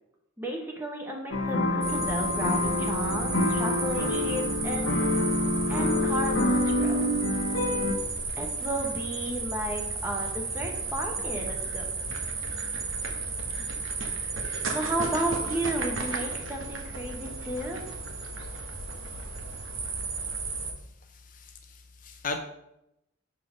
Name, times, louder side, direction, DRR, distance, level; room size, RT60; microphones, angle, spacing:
voice 1, 0.4-4.9 5.7-7.1 8.4-11.9 14.7-17.8, right 1 dB, 10° right, 0 dB, 1.0 m, -33 dB
sound 1, 1.3-8.0, left 1 dB, 85° left, 0.9 m, -27 dB
sound 2, 1.8-20.7, right 3 dB, 85° right, 1.0 m, -33 dB
voice 2, 21.2-22.4, left 3 dB, 40° left, 4 dB, 0.5 m, -37 dB
6.6 x 3.8 x 5.0 m, 0.84 s
head